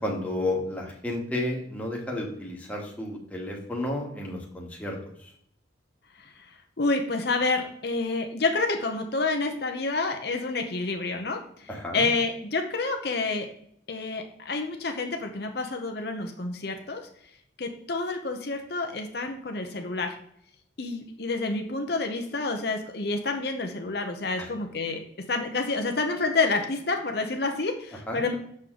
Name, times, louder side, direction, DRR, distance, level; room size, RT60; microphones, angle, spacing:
voice 1, 0.0-5.3 11.7-12.1 24.4-24.5 27.9-28.2, left 1 dB, 10° left, -2 dB, 1.6 m, -32 dB
voice 2, 6.8-13.5 13.9-17.0 17.6-20.2 20.8-25.0 25.3-28.3, left 3 dB, 55° left, 4 dB, 0.8 m, -28 dB
7.5 x 6.4 x 3.8 m, 0.69 s
head